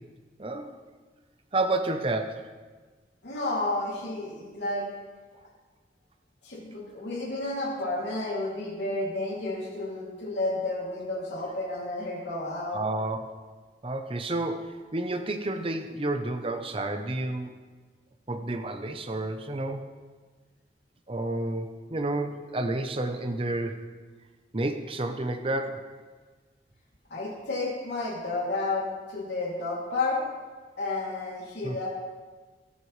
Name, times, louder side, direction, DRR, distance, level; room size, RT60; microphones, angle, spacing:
voice 1, 0.4-0.8 1.5-2.5 12.7-13.2 13.8-17.5 18.3-19.9 21.1-23.8 24.5-25.9 31.6-31.8, right 2 dB, 30° right, 7 dB, 0.7 m, -30 dB
voice 2, 3.2-4.9 6.4-12.8 27.1-30.2 30.8-31.9, left 2 dB, 85° left, -5 dB, 2.7 m, -31 dB
18.0 x 8.2 x 3.2 m, 1.4 s
head